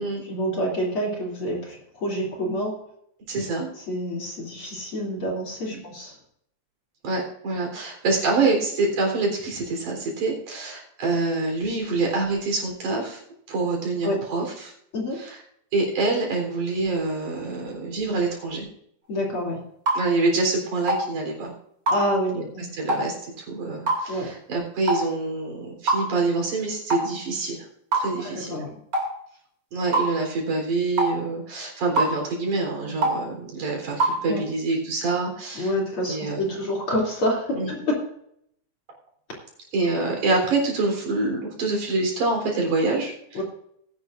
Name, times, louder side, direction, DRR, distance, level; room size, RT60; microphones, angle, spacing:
voice 1, 0.0-2.8 3.9-6.2 14.0-14.2 14.9-15.2 19.1-19.6 21.9-22.7 24.1-24.3 28.2-28.8 34.3-34.4 35.5-38.1 43.3-43.4, equal, 45° left, -2 dB, 3.7 m, -27 dB
voice 2, 3.3-3.7 5.7-5.8 7.0-13.2 13.5-14.7 15.2-15.4 15.7-18.7 19.9-21.5 22.4-22.5 22.8-27.6 27.9-28.6 29.7-35.7 36.1-36.4 37.5-37.7 39.7-43.4, right 3 dB, 75° right, 1 dB, 5.3 m, -26 dB
sound 1, 19.9-20.0 20.9-21.1 21.9-22.0 22.9-23.1 23.9-24.1 24.9-25.1 25.9-26.0 26.9-27.1 27.9-28.1 28.9-29.1 29.9-30.1 31.0-31.2 32.0-32.2 33.0-33.2 34.0-34.2, right 2 dB, 35° right, 3.1 m, -22 dB
20.0 x 11.0 x 2.6 m, 0.70 s
omnidirectional pair, 3.5 m